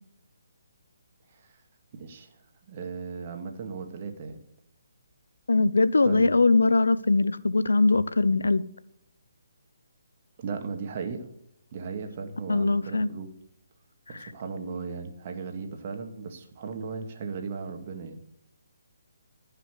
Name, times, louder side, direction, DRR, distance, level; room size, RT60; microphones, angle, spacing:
voice 1, 1.9-2.4 2.7-4.4 6.0-6.4 10.4-11.3 11.7-13.3 14.1-18.2, right 5 dB, 40° right, 5 dB, 2.0 m, -36 dB
voice 2, 5.5-8.6 12.5-13.1, left 3 dB, 80° left, 16 dB, 0.7 m, -21 dB
14.0 x 5.8 x 8.1 m, 0.76 s
figure-of-eight pair, 145°, 0 cm